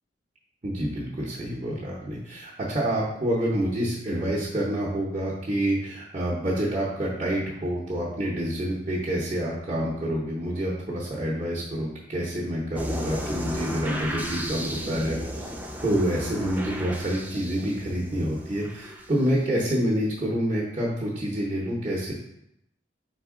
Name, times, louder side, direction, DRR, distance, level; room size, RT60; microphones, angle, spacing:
voice 1, 0.6-15.5 15.8-22.1, equal, 35° right, -8 dB, 0.8 m, -27 dB
sound 1, 12.8-19.3, equal, 10° right, 0.4 m, -34 dB
4.1 x 3.5 x 3.7 m, 0.79 s
head